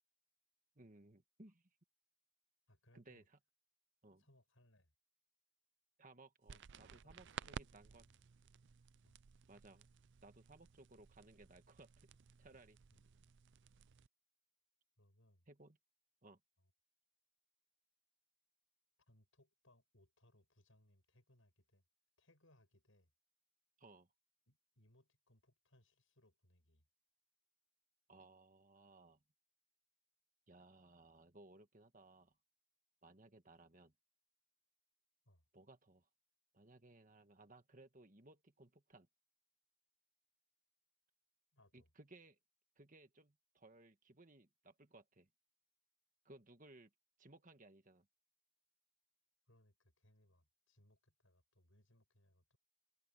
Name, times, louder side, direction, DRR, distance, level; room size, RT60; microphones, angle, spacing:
voice 1, 0.8-1.6 2.9-3.4 4.0-4.3 6.0-8.0 9.5-9.9 10.2-12.1 12.4-12.8 15.5-15.8 16.2-16.4 23.8-24.1 28.1-29.2 30.5-32.4 33.0-33.9 35.5-36.1 36.5-39.1 41.7-42.4 42.8-45.3 46.3-46.9 47.2-48.1, right 2 dB, 35° right, 1.6 m, -62 dB
voice 2, 2.7-3.3 4.2-4.9 6.5-8.2 9.0-9.2 12.9-13.0 15.0-15.5 16.6-16.7 19.1-21.8 22.2-23.1 24.5-26.9 35.2-35.5 41.5-41.9 49.5-52.6, left 1 dB, 65° left, 7.8 m, -72 dB
sound 1, 6.5-14.1, right 6 dB, 55° right, 0.4 m, -56 dB
head